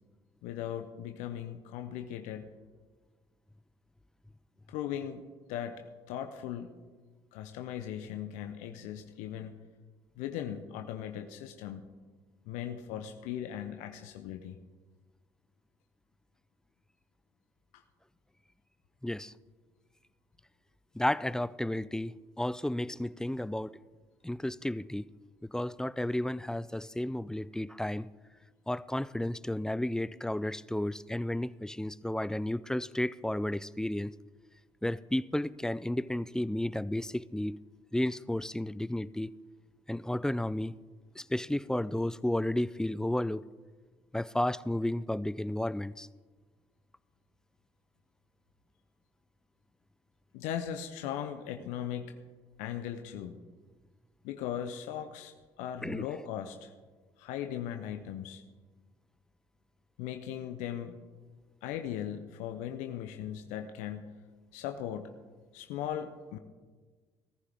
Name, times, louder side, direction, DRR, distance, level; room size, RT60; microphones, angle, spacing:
voice 1, 0.4-2.5 4.7-5.2 5.5-6.7 7.3-9.5 10.2-11.9 12.5-14.6 17.7-17.8 50.3-52.2 52.6-53.4 54.2-56.7 57.2-58.4 60.0-61.0 61.6-64.2 64.5-65.1 65.5-66.4, left 10 dB, 70° left, 0.8 m, -38 dB
voice 2, 19.0-19.3 20.9-23.8 24.2-25.1 25.5-28.1 28.7-34.1 34.8-37.6 37.9-39.3 39.9-40.8 41.2-43.4 44.1-46.1 55.8-56.0, left 1 dB, 5° left, 0.4 m, -32 dB
18.0 x 14.5 x 3.5 m
hypercardioid pair, 55°, 13 cm